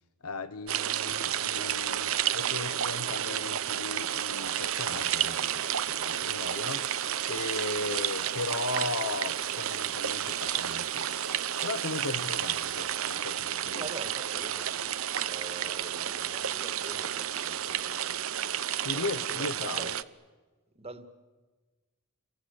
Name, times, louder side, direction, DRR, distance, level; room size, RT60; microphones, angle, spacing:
voice 1, 0.2-7.0 7.3-11.2 11.6-13.9 18.8-19.9, left 3 dB, 80° left, 11 dB, 1.1 m, -37 dB
sound 1, 0.7-20.0, right 10 dB, 65° right, 0.8 m, -31 dB
Rain, 3.7-13.2, left 6 dB, 50° left, 1.9 m, -55 dB
voice 2, 13.7-14.9 15.2-18.3 18.9-20.0 20.8-21.1, right 2 dB, 25° right, 8 dB, 2.0 m, -45 dB
29.0 x 23.0 x 8.4 m, 1.3 s
head